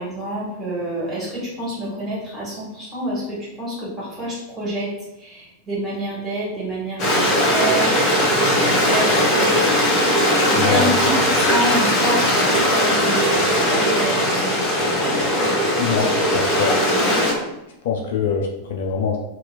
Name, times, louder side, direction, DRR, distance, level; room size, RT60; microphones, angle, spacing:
voice 1, 0.0-3.2 3.6-4.9 5.2-7.2 7.5-7.9 8.5-9.8 10.3-13.3 13.7-14.4, right 1 dB, 15° right, -8 dB, 1.4 m, -27 dB
Stream, 7.0-17.3, equal, 30° left, 0.7 m, -19 dB
voice 2, 10.5-11.5 15.8-16.7 17.8-19.2, left 5 dB, 55° left, 1 dB, 0.3 m, -24 dB
2.8 x 2.4 x 2.4 m, 0.93 s
figure-of-eight pair, 90°, 0 cm